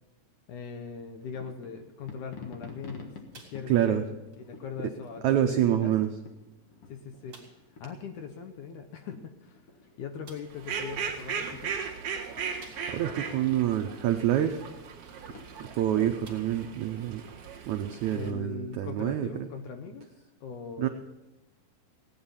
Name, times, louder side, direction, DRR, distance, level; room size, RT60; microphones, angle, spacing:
voice 1, 0.5-4.0 4.4-5.9 6.9-7.4 7.8-9.6 10.0-11.7 15.9-16.2 18.1-20.1 20.4-20.9, left 6 dB, 70° left, 6 dB, 2.0 m, -40 dB
sound 1, 1.2-16.4, left 5 dB, 50° left, 1.8 m, -51 dB
sound 2, 3.3-4.0 4.3-4.5 5.1-5.2 6.0-6.1 6.5-6.6 7.3-7.7 9.4-9.5 10.2-10.6 12.6-13.2 13.7-13.8 15.6-15.8 16.2-16.7 17.2-17.3 18.9-19.0, right 4 dB, 35° right, 2.8 m, -53 dB
voice 2, 3.7-4.0 5.2-6.1 12.9-14.6 15.6-17.2 17.7-19.5 20.8-20.9, right 11 dB, 85° right, 6 dB, 1.6 m, -27 dB
Fowl, 10.5-18.3, right 6 dB, 50° right, 2.2 m, -38 dB
17.5 x 9.6 x 5.6 m, 0.99 s
omnidirectional pair, 4.3 m